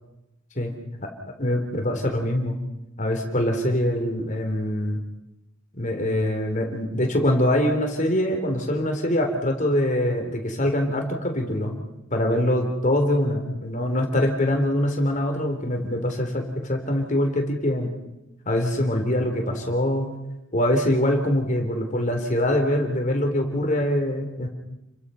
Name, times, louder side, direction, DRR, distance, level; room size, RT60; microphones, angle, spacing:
voice 1, 1.4-2.6 3.0-5.0 5.8-11.8 12.1-17.9 18.5-20.1 20.5-24.5, left 1 dB, 40° left, 3 dB, 3.6 m, -23 dB
30.0 x 23.0 x 5.7 m, 0.96 s
head